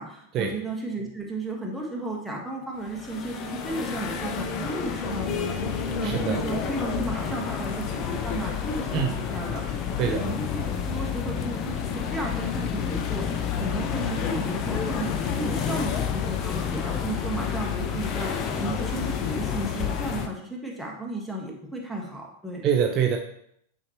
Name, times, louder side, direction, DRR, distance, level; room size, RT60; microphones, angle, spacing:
voice 1, 0.0-13.2 13.6-15.1 15.3-22.6, right 1 dB, ahead, -2 dB, 1.5 m, -34 dB
sound 1, 2.9-20.3, left 7 dB, 35° left, 0.6 m, -29 dB
voice 2, 6.0-6.5 8.9-9.2 10.0-10.3 22.6-23.2, right 8 dB, 35° right, 3 dB, 0.6 m, -25 dB
8.5 x 4.4 x 3.0 m, 0.71 s
figure-of-eight pair, 90°, 0 cm